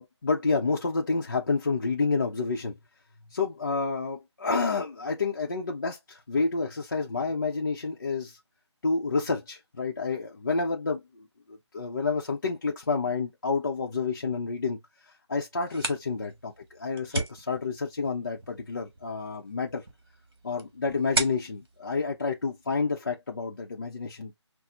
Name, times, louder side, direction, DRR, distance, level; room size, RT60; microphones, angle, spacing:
voice 1, 0.0-2.7 3.3-8.4 8.8-19.9 20.4-24.4, left 4 dB, 40° left, 0.6 m, -29 dB
sound 1, 15.5-23.0, right 2 dB, 50° right, 1.4 m, -37 dB
5.7 x 2.0 x 2.4 m
figure-of-eight pair, 170°, 15 cm